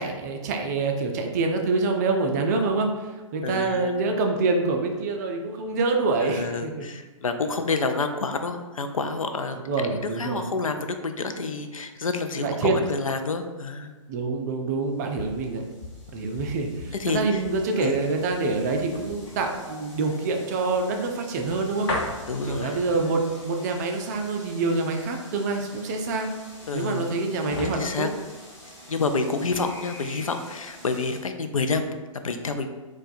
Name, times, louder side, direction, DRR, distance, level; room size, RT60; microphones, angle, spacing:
voice 1, 0.0-6.9 9.6-10.5 12.4-12.7 14.1-15.6 16.1-21.9 22.5-26.3 26.7-28.1, right 3 dB, 30° right, 3 dB, 0.4 m, -26 dB
voice 2, 3.4-3.9 6.2-9.6 9.9-13.9 17.0-17.4 17.8-17.9 22.3-22.8 26.7-27.1 27.7-28.1 28.9-31.8 32.2-32.7, left 4 dB, 80° left, 7 dB, 0.4 m, -28 dB
sound 1, 14.8-29.1 29.5-29.7, left 2 dB, 55° left, 0.9 m, -39 dB
sound 2, 14.9-31.2, left 1 dB, 15° left, 1.0 m, -48 dB
4.4 x 2.3 x 2.5 m, 1.2 s
figure-of-eight pair, 120°, 17 cm